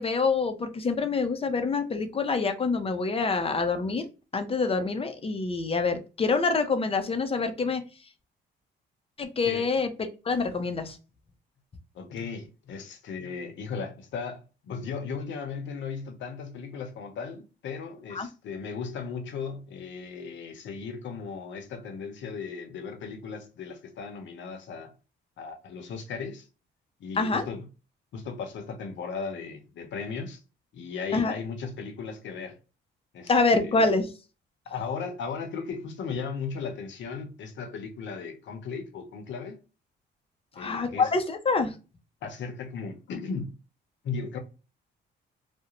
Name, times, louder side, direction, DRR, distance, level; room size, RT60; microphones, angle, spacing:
voice 1, 0.0-4.1 4.3-7.8 9.2-11.0 18.1-18.3 27.2-27.4 31.1-31.3 33.3-34.1 40.6-41.7, left 4 dB, 30° left, 0.5 m, -26 dB
voice 2, 11.9-24.9 25.4-26.5 27.0-27.7 28.1-30.4 30.7-32.6 33.1-33.9 34.7-39.6 40.5-41.1 42.2-43.5 44.0-44.4, left 5 dB, 70° left, 0.7 m, -36 dB
2.4 x 2.1 x 2.9 m
cardioid pair, 90°, 20 cm